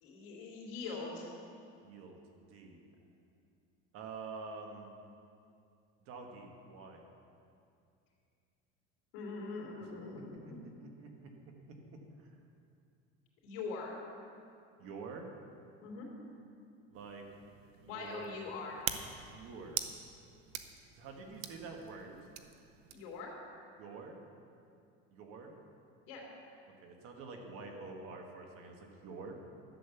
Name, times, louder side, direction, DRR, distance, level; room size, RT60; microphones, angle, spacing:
voice 1, 0.0-1.3 9.1-10.6 13.4-14.0 15.8-16.1 17.9-18.9 22.9-23.3 26.1-26.2, left 4 dB, 80° left, -3 dB, 2.9 m, -42 dB
voice 2, 1.8-2.8 3.9-4.9 6.1-7.0 10.4-10.5 10.8-11.3 14.8-15.3 16.9-17.2 17.8-18.4 19.3-19.8 20.9-22.2 23.8-24.2 25.1-25.5 26.8-29.4, right 4 dB, 50° right, 3 dB, 1.6 m, -47 dB
sound 1, 16.9-23.2, right 10 dB, 85° right, 0.9 m, -45 dB
12.0 x 7.8 x 6.9 m, 2.5 s
cardioid pair, 150°, 29 cm